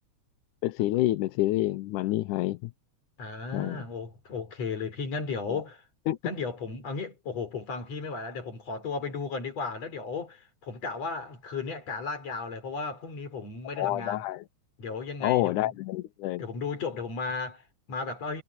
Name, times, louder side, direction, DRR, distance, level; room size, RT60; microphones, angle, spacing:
voice 1, 0.6-2.7 3.5-3.8 5.5-5.6 6.1-6.2 13.8-14.4 15.2-16.4, left 16 dB, 90° left, 2.3 m, -28 dB
voice 2, 3.2-5.8 6.2-14.2 14.8-15.7 16.4-18.4, left 4 dB, 60° left, 5.4 m, -35 dB
omnidirectional pair, 3.5 m